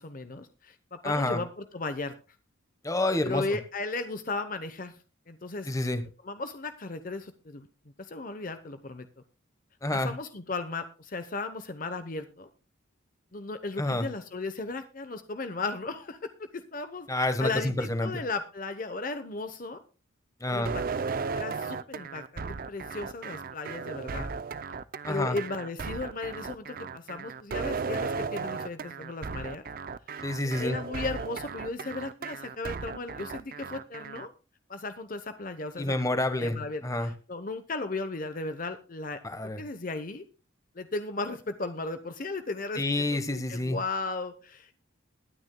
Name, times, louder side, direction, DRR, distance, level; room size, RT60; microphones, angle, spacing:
voice 1, 0.0-2.1 3.2-5.7 6.2-7.7 8.0-9.1 9.9-12.5 13.3-19.8 20.5-21.0 21.3-24.3 25.1-29.6 30.1-30.2 30.6-34.3 34.7-39.2 39.6-40.2 40.7-43.0 43.3-44.8, left 3 dB, 40° left, 9 dB, 0.8 m, -36 dB
voice 2, 1.0-1.4 2.8-3.4 5.7-6.0 9.8-10.1 13.8-14.1 17.1-18.2 20.4-20.7 25.0-25.4 30.2-30.8 35.8-37.1 39.2-39.6 42.8-43.8, left 1 dB, 15° left, 9 dB, 1.1 m, -28 dB
sound 1, 20.7-34.3, right 5 dB, 45° right, 0.5 m, -35 dB
21.0 x 9.5 x 2.2 m, 0.34 s
head